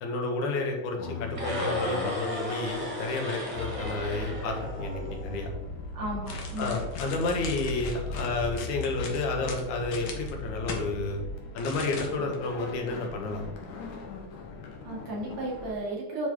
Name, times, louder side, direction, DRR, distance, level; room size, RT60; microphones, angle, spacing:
voice 1, 0.0-5.5 6.6-11.2 11.5-13.5, left 3 dB, 85° left, 2 dB, 2.7 m, -31 dB
sound 1, 1.0-15.7, left 3 dB, 70° left, 2.3 m, -39 dB
sound 2, 1.3-5.5, left 1 dB, 20° right, 0.9 m, -35 dB
voice 2, 5.9-6.8 14.8-16.3, right 1 dB, 65° right, -4 dB, 3.5 m, -34 dB
sound 3, 6.3-10.8 11.6-12.4 12.7-12.8, left 4 dB, 55° left, 1.8 m, -40 dB
10.0 x 4.8 x 3.7 m, 1.1 s
omnidirectional pair, 3.3 m